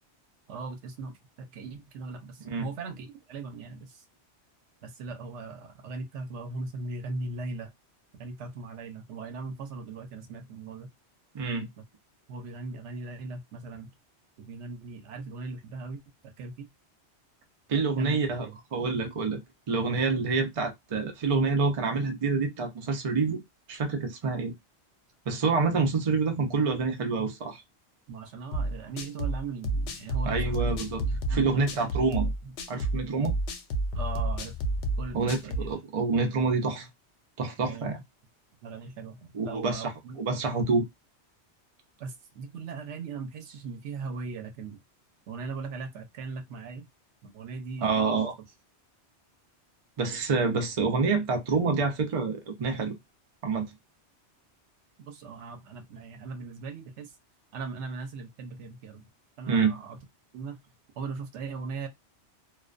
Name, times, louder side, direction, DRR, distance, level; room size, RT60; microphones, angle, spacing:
voice 1, 0.5-4.0 4.8-7.7 8.2-10.9 11.8-11.9 12.3-13.9 14.4-16.7 18.0-18.6 28.1-30.7 31.0-31.8 32.4-32.5 33.9-34.6 35.0-35.7 37.6-37.9 38.6-40.2 42.0-44.8 45.3-46.9 47.2-48.1 55.0-57.1 57.5-59.1 59.4-60.0 60.3-60.6 61.0-61.9, right 4 dB, 85° right, 0.9 m, -39 dB
voice 2, 11.3-11.7 17.7-19.4 19.7-23.4 23.7-24.5 25.3-27.6 30.3-31.0 31.3-32.3 32.7-33.4 35.1-35.4 35.6-36.9 37.4-38.0 39.3-39.9 40.2-40.9 47.8-48.3 50.0-52.9 53.4-53.7 59.5-59.8, right 4 dB, 40° right, 0.5 m, -27 dB
sound 1, 28.5-35.7, right 1 dB, 75° left, 0.8 m, -30 dB
2.3 x 2.2 x 2.4 m
omnidirectional pair, 1.2 m